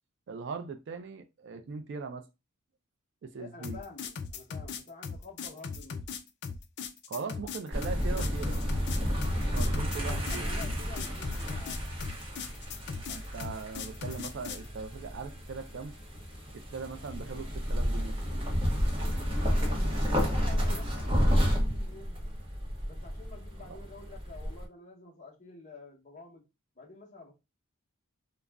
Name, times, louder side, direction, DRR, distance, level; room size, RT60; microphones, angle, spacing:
voice 1, 0.3-2.3 3.2-3.8 7.1-8.6 9.5-10.5 13.1-15.9 16.7-18.2 23.7-23.8, right 4 dB, 50° right, 0.3 m, -40 dB
voice 2, 3.4-6.0 9.9-11.8 19.6-22.2 22.9-26.4 26.8-27.3, left 3 dB, 35° left, 0.8 m, -49 dB
sound 1, 3.6-14.7, left 5 dB, 50° left, 0.3 m, -39 dB
sound 2, 7.7-24.7, equal, 25° right, 0.7 m, -31 dB
2.4 x 2.0 x 3.3 m
head